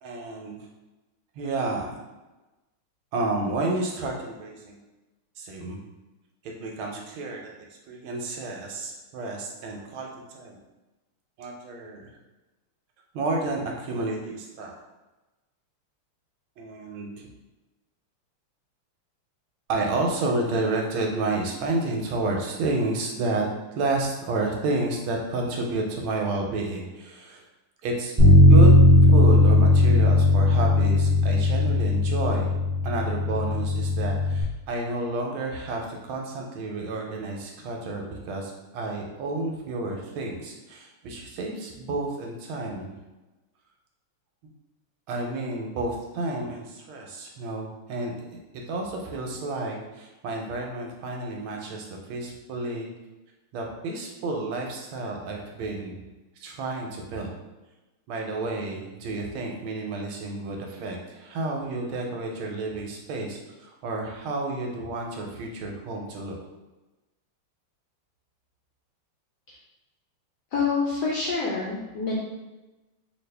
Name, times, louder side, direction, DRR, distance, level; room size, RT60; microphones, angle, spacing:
voice 1, 0.0-0.6 1.4-2.0 3.1-4.8 5.4-5.8 6.4-7.5 7.9-10.6 11.4-12.1 13.1-14.7 16.6-17.3 19.7-23.4 23.8-27.4 27.8-28.1 28.5-32.5 32.8-42.9 45.1-48.4 48.7-52.9 53.5-56.0 56.4-57.4 58.1-66.4, right 2 dB, 75° right, 0 dB, 1.3 m, -30 dB
Bass guitar, 28.2-34.4, left 2 dB, 25° right, 0.6 m, -17 dB
voice 2, 70.5-72.2, left 4 dB, 75° left, -5 dB, 0.9 m, -26 dB
3.4 x 2.7 x 3.2 m, 1.1 s
omnidirectional pair, 2.4 m